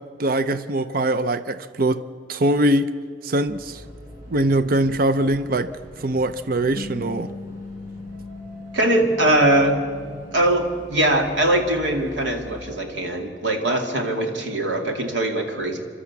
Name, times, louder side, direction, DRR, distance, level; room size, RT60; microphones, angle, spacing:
voice 1, 0.2-2.0 2.3-2.9 3.2-3.8 4.3-5.7 6.0-7.3, right 1 dB, 50° right, 0.6 m, -22 dB
sound 1, 3.5-12.7, equal, 15° right, 5.9 m, -44 dB
sound 2, 6.8-11.4, left 3 dB, 30° left, 1.5 m, -39 dB
voice 2, 8.7-9.8 10.3-15.8, right 1 dB, 80° right, 2.4 m, -21 dB
29.0 x 13.0 x 8.3 m
head